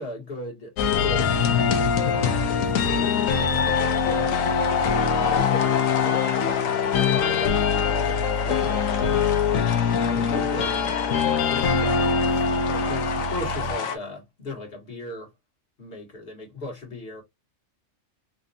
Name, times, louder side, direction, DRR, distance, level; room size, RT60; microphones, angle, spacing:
voice 1, 0.0-4.5 5.1-9.3 9.9-15.3 15.8-17.2, left 1 dB, 45° left, 1.8 m, -37 dB
sound 1, 0.8-14.0, left 6 dB, 80° left, 1.1 m, -23 dB
4.3 x 2.6 x 2.6 m
omnidirectional pair, 1.4 m